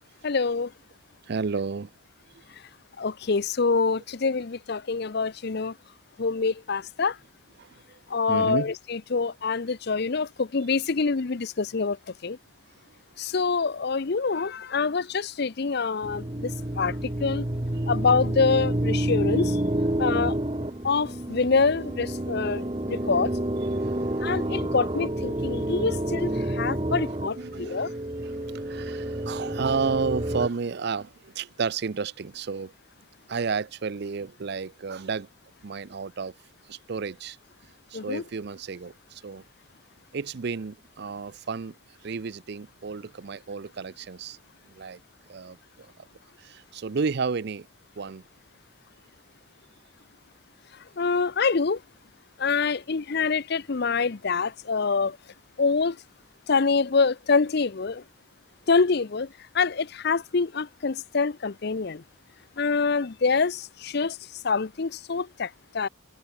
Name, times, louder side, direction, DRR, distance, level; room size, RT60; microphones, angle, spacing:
voice 1, 0.2-0.7 3.0-5.7 6.2-7.2 8.1-12.0 12.2-12.4 13.2-16.5 16.8-17.4 17.9-19.6 20.0-20.4 20.8-23.3 24.2-27.9 37.9-38.2 51.0-51.8 52.4-55.2 55.6-56.0 56.5-58.0 58.7-59.3 59.5-62.0 62.6-64.2 64.4-65.5 65.7-65.9, left 4 dB, 50° left, 0.6 m, -25 dB
voice 2, 1.2-1.9 7.6-8.0 8.3-8.7 12.9-13.0 17.8-17.9 23.6-24.4 27.4-28.0 28.2-32.7 33.3-35.3 35.6-36.3 36.6-37.4 37.9-39.4 40.1-41.8 42.0-44.4 44.7-45.0 45.3-46.1 46.4-47.7 48.0-48.2, right 5 dB, 50° right, 0.5 m, -32 dB
sound 1, 16.0-30.5, right 1 dB, 25° right, 1.2 m, -29 dB
head